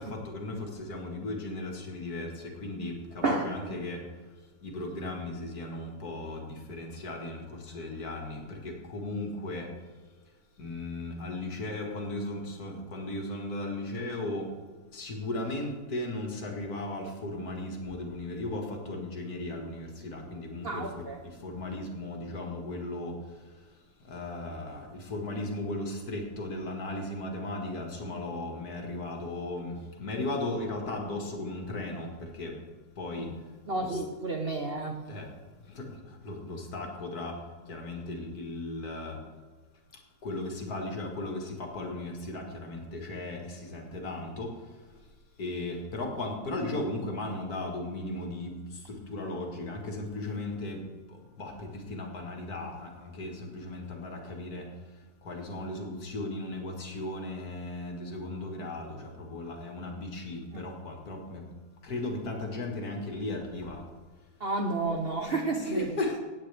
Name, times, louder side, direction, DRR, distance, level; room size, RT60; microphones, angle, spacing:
voice 1, 0.0-4.0 4.6-7.4 7.7-9.7 10.6-14.5 14.9-21.0 21.4-23.1 24.1-32.5 33.0-33.3 33.8-34.0 35.1-35.3 35.8-35.9 36.2-37.3 37.7-39.2 40.2-44.5 45.4-48.5 48.9-50.8 51.4-54.6 55.3-61.4 61.8-63.8 65.6-66.2, left 2 dB, 50° left, 2 dB, 2.0 m, -36 dB
voice 2, 20.6-21.2 33.2-33.3 33.7-35.0 60.5-60.6 64.4-65.9, right 3 dB, 50° right, 3 dB, 0.7 m, -31 dB
16.5 x 8.8 x 3.4 m, 1.4 s
omnidirectional pair, 2.2 m